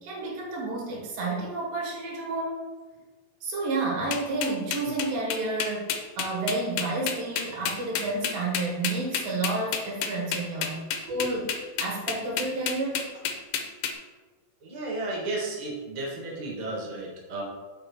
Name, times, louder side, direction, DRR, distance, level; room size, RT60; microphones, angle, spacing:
voice 1, 0.0-2.6 3.4-11.5 11.8-13.1, right 2 dB, 85° right, -2 dB, 3.4 m, -30 dB
sound 1, 4.1-13.9, left 7 dB, 85° left, 2.4 m, -30 dB
voice 2, 14.6-17.4, right 2 dB, 60° right, -4 dB, 0.4 m, -33 dB
8.6 x 6.1 x 3.3 m, 1.3 s
omnidirectional pair, 3.9 m